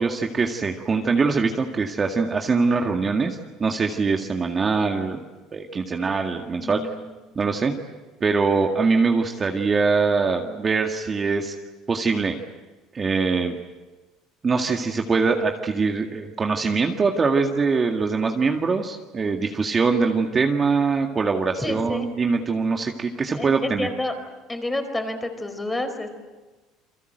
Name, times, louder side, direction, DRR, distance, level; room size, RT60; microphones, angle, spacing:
voice 1, 0.0-5.2 5.5-6.8 7.4-7.7 8.2-11.5 11.9-12.4 12.9-13.6 14.4-23.9, right 4 dB, 25° right, 3 dB, 2.0 m, -23 dB
voice 2, 6.6-7.1 21.6-22.1 23.3-24.1 24.5-26.1, left 2 dB, 10° left, 7 dB, 4.5 m, -29 dB
29.5 x 23.5 x 8.0 m, 1.2 s
cardioid pair, 115°, 0 cm